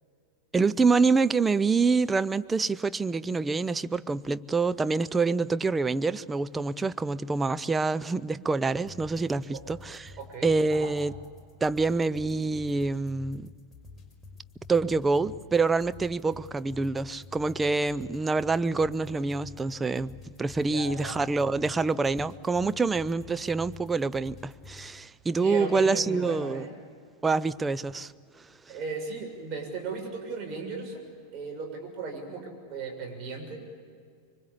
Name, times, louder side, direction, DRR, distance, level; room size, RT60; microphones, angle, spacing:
voice 1, 0.5-10.1 10.4-11.1 11.6-13.5 14.7-20.1 20.4-26.7 27.2-28.1, right 4 dB, 15° right, 0.6 m, -26 dB
sound 1, 8.8-24.9, left 3 dB, 10° left, 5.3 m, -49 dB
voice 2, 10.2-10.9 20.7-21.2 25.3-26.7 28.7-31.0 31.3-33.6, right 4 dB, 35° right, 6.9 m, -36 dB
25.5 x 24.5 x 8.4 m
figure-of-eight pair, 90°, 0 cm